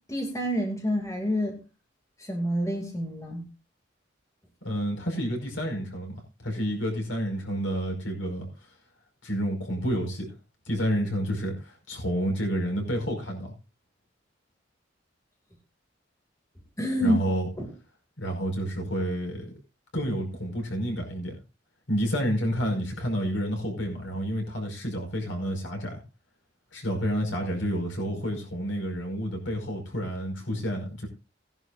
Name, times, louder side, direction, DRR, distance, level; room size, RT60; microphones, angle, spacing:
voice 1, 0.1-1.6 2.2-3.5 16.8-17.2 17.6-17.7, equal, 15° left, 2.5 m, -27 dB
voice 2, 4.6-8.5 9.2-10.3 10.7-13.5 17.0-17.5 18.2-19.5 19.9-21.4 21.9-26.0 26.7-31.1, equal, 90° left, 5.3 m, -29 dB
19.0 x 11.0 x 2.5 m
head